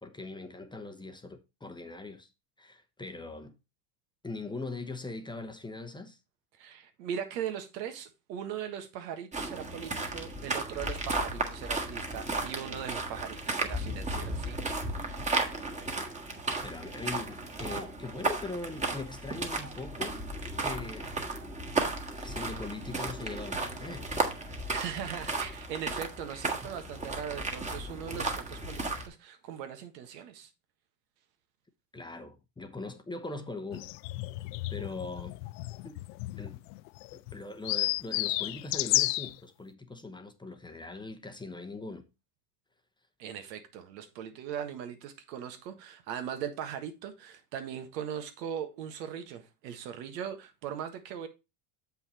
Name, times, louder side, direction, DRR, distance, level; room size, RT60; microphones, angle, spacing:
voice 1, 0.0-2.3 2.6-3.6 4.2-6.2 16.6-20.2 20.6-21.2 22.2-24.1 31.9-33.9 34.7-35.4 35.8-36.0 36.4-36.6 37.1-42.0, left 3 dB, 10° left, 0.8 m, -41 dB
voice 2, 6.6-14.8 24.7-30.5 43.2-51.3, right 8 dB, 90° right, 1.6 m, -39 dB
sound 1, 9.3-29.1, right 2 dB, 15° right, 1.5 m, -34 dB
sound 2, 33.7-39.3, left 19 dB, 80° left, 0.6 m, -32 dB
7.2 x 5.7 x 4.2 m
supercardioid pair, 120°, 49 cm